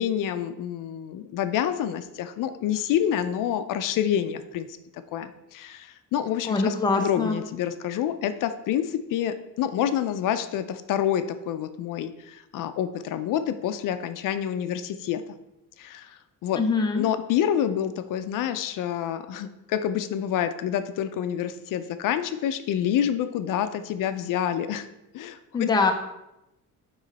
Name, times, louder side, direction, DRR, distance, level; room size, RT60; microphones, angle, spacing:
voice 1, 0.0-4.7 5.1-15.2 15.8-16.6 17.0-24.9 25.1-25.7, left 10 dB, 75° left, 10 dB, 0.5 m, -28 dB
voice 2, 6.5-7.4 16.6-17.0 25.5-25.9, left 4 dB, 15° left, 3 dB, 0.5 m, -23 dB
9.2 x 3.1 x 4.0 m, 0.90 s
cardioid pair, 170°, 33 cm